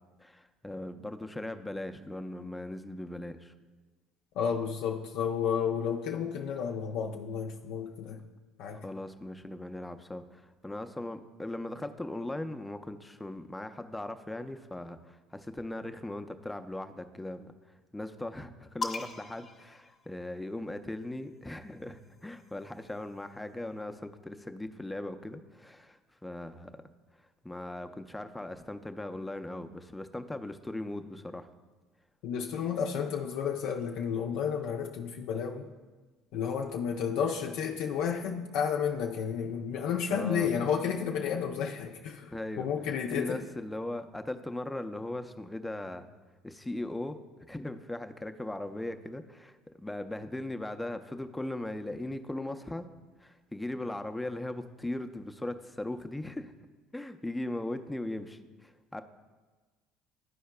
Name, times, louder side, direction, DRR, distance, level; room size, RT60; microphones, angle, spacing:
voice 1, 0.2-3.5 8.8-17.5 17.9-26.7 27.4-31.5 40.1-40.5 42.3-42.7 43.1-46.1 46.4-47.2 47.5-52.9 53.2-56.5 56.9-59.0, left 1 dB, 10° left, 8 dB, 0.5 m, -39 dB
voice 2, 4.4-8.2 8.6-8.8 32.2-35.7 36.3-43.4, left 7 dB, 70° left, 2 dB, 0.4 m, -32 dB
sound 1, 18.8-20.6 21.7-23.4, left 4 dB, 35° left, 0.8 m, -42 dB
12.0 x 4.6 x 2.2 m, 1.3 s
supercardioid pair, 80°, 0 cm